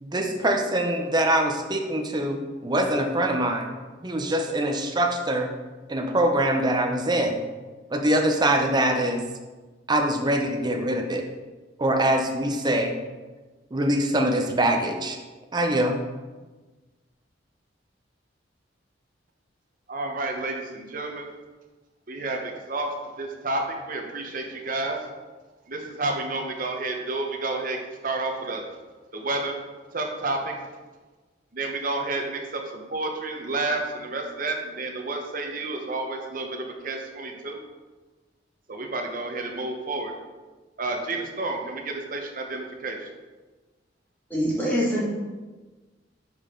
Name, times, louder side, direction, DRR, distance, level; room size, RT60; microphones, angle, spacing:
voice 1, 0.0-3.8 4.0-5.5 5.9-7.4 7.9-9.2 9.9-11.2 11.8-12.9 13.7-15.2 15.5-16.0, right 1 dB, 25° right, 4 dB, 0.6 m, -23 dB
voice 2, 19.9-21.3 22.1-25.0 25.7-27.8 28.0-28.7 29.1-29.6 29.9-30.5 31.5-37.6 38.7-40.1 40.8-43.1, right 2 dB, 50° right, 3 dB, 0.9 m, -30 dB
voice 3, 44.3-45.0, equal, 10° left, -7 dB, 2.0 m, -24 dB
6.3 x 5.2 x 3.7 m, 1.3 s
head